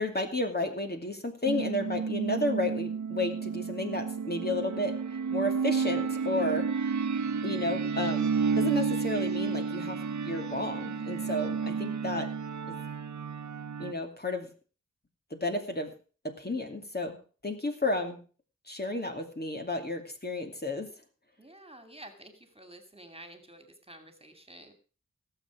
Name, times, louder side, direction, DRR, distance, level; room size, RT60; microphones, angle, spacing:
voice 1, 0.0-6.7 7.4-8.3 8.6-12.3 12.7-12.8 13.8-14.5 15.4-15.9 16.2-17.2 17.4-18.2 18.7-20.9, left 2 dB, 30° left, 4 dB, 2.6 m, -32 dB
sound 1, 1.5-13.9, right 5 dB, 65° right, 0.8 m, -31 dB
voice 2, 21.4-24.7, right 1 dB, 20° right, 6 dB, 2.5 m, -50 dB
17.0 x 7.4 x 6.1 m, 0.38 s
wide cardioid pair, 55°, 31 cm